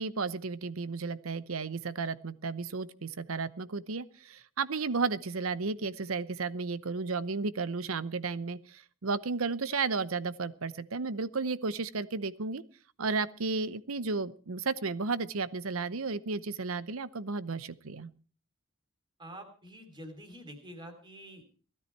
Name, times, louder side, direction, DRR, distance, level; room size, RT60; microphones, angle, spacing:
voice 1, 0.0-12.6 13.0-18.1, right 4 dB, 80° right, 16 dB, 0.8 m, -33 dB
voice 2, 19.2-21.5, equal, 20° right, 6 dB, 3.4 m, -47 dB
18.5 x 13.0 x 4.6 m, 0.39 s
head